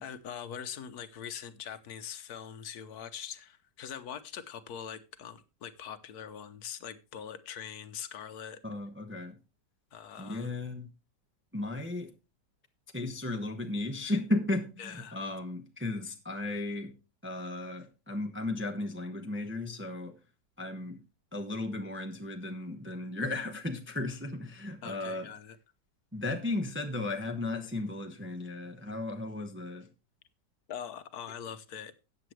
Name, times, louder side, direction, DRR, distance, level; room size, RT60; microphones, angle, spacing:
voice 1, 0.0-8.6 9.9-10.5 14.8-15.2 24.8-25.6 30.7-31.9, left 8 dB, 65° left, 1.4 m, -42 dB
voice 2, 8.6-9.4 10.2-10.9 11.5-12.1 12.9-16.9 17.2-20.2 20.6-21.0 21.3-25.3 26.1-29.9, left 2 dB, 10° right, 1.0 m, -35 dB
14.0 x 8.8 x 3.2 m
omnidirectional pair, 1.8 m